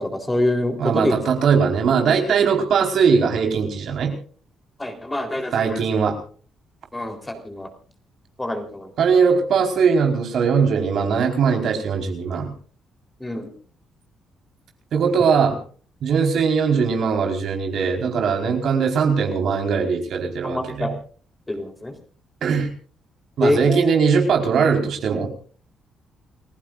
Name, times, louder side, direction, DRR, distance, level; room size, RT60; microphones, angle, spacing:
voice 1, 0.0-1.2 4.8-5.8 6.9-7.7 8.4-8.9 13.2-13.5 20.4-20.9 21.5-21.9 23.4-23.9, left 1 dB, 15° left, 5 dB, 3.8 m, -25 dB
voice 2, 0.8-4.1 5.5-6.2 9.0-12.5 14.9-15.6 16.0-20.9 22.4-22.7 23.4-25.3, right 6 dB, 70° right, 4 dB, 4.5 m, -20 dB
29.5 x 15.5 x 2.6 m, 0.43 s
cardioid pair, 90°, 0 cm